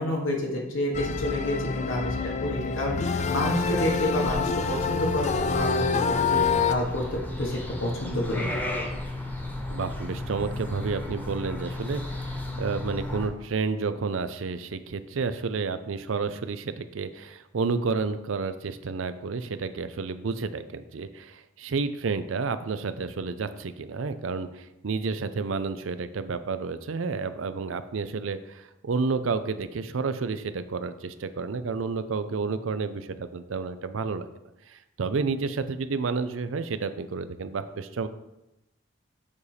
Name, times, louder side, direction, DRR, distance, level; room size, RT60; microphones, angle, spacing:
voice 1, 0.0-8.6, left 1 dB, 85° left, 0 dB, 1.6 m, -29 dB
sound 1, 0.9-6.7, left 5 dB, 35° left, 0.3 m, -27 dB
sound 2, 3.2-13.3, left 1 dB, 10° left, 1.1 m, -35 dB
voice 2, 9.7-34.3 34.7-38.1, right 4 dB, 85° right, 12 dB, 0.5 m, -30 dB
7.2 x 4.1 x 5.0 m, 0.91 s
head